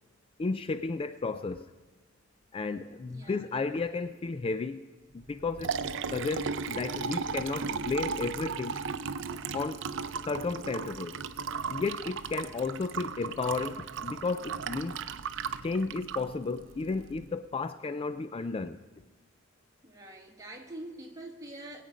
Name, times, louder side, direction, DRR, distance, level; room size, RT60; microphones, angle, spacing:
voice 1, 0.4-1.7 2.5-4.9 5.1-5.7 6.1-8.9 9.5-9.8 10.2-11.2 11.7-15.0 15.6-18.8, left 4 dB, 25° left, 12 dB, 0.3 m, -33 dB
voice 2, 2.9-3.5 19.8-21.8, right 1 dB, 15° right, 0 dB, 1.8 m, -45 dB
Liquid, 5.3-17.2, right 5 dB, 65° right, 0.6 m, -36 dB
21.5 x 8.5 x 5.0 m, 1.3 s
head